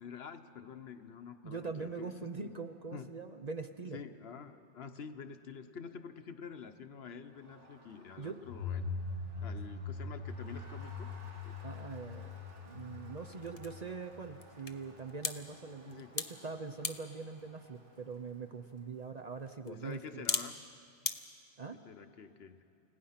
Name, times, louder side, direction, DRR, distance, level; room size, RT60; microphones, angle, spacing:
voice 1, 0.0-2.1 2.4-2.5 2.9-3.1 3.9-8.9 9.4-11.1 11.4-11.6 15.9-16.1 19.6-20.5 21.8-22.6, left 6 dB, 60° left, 9 dB, 1.1 m, -48 dB
voice 2, 1.4-4.0 8.2-8.4 11.6-12.4 12.7-20.3 21.6-21.8, right 4 dB, 40° right, 7 dB, 0.7 m, -43 dB
Crowd, 7.1-19.6, right 2 dB, 80° right, 2.7 m, -59 dB
sound 1, 8.4-15.0, left 4 dB, 90° left, 1.6 m, -42 dB
sound 2, 11.8-21.2, left 4 dB, 35° left, 0.8 m, -43 dB
29.5 x 16.5 x 5.8 m, 2.7 s
omnidirectional pair, 1.2 m